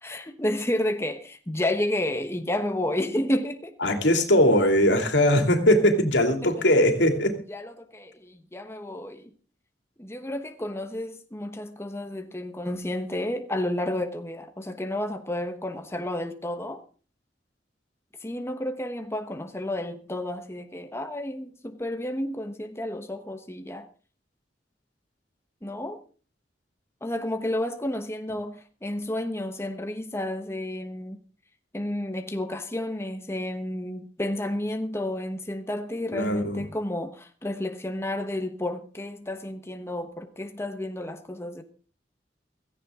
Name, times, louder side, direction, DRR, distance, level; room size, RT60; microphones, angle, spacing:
voice 1, 0.0-3.7 6.4-6.5 7.5-9.3 10.0-16.8 18.2-23.9 25.6-26.0 27.0-31.2 31.7-41.6, left 1 dB, 15° left, 1.1 m, -31 dB
voice 2, 3.8-7.3 36.1-36.7, left 1 dB, 85° left, 2.8 m, -20 dB
16.5 x 15.0 x 3.8 m
head